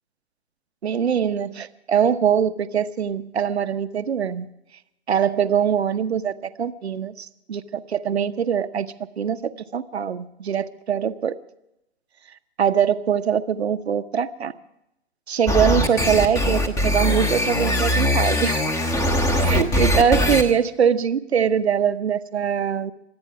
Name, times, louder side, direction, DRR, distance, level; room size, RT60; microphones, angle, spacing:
voice 1, 0.8-4.5 5.1-11.3 12.6-14.5 15.3-18.6 19.3-22.9, right 8 dB, 75° right, 11 dB, 1.0 m, -22 dB
sound 1, 15.5-20.4, left 1 dB, 10° left, 1.1 m, -21 dB
25.0 x 8.9 x 5.8 m, 0.85 s
figure-of-eight pair, 125°, 33 cm